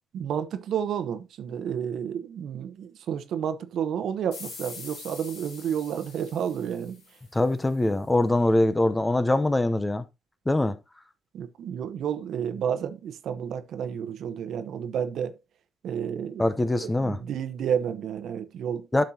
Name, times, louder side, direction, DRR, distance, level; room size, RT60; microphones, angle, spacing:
voice 1, 0.1-7.0 11.3-15.3 15.8-16.5 16.8-19.0, right 8 dB, 70° right, 0.9 m, -31 dB
sound 1, 4.3-7.6, left 4 dB, 80° left, 3.5 m, -44 dB
voice 2, 7.3-10.0 10.5-10.8 16.4-17.2 18.9-19.0, left 1 dB, 15° left, 0.8 m, -23 dB
10.0 x 6.3 x 2.8 m
cardioid pair, 90°, 0 cm